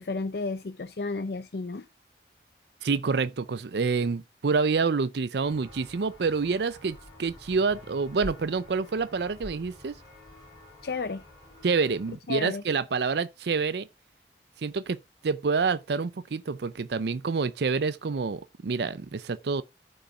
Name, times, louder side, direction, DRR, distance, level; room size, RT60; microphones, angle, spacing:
voice 1, 0.0-1.9 10.8-11.2 12.3-12.6, left 3 dB, 65° left, 0.5 m, -32 dB
voice 2, 2.8-10.0 11.6-13.9 14.6-19.6, right 4 dB, 70° right, 0.5 m, -27 dB
Walk footsteps, 5.4-12.1, left 1 dB, 25° left, 5.7 m, -47 dB
14.0 x 5.6 x 2.3 m
head